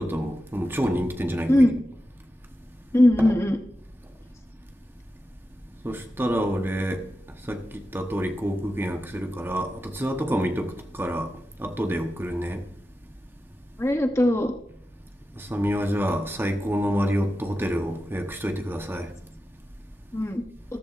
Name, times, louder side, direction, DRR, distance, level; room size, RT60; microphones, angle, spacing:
voice 1, 0.0-1.7 3.2-3.3 5.8-7.0 7.5-10.7 11.0-11.3 11.6-12.6 15.4-19.1, equal, 10° right, 1.0 m, -27 dB
voice 2, 2.9-3.6 13.8-14.5 20.1-20.4, left 1 dB, 15° left, 0.8 m, -19 dB
14.0 x 14.0 x 2.5 m
head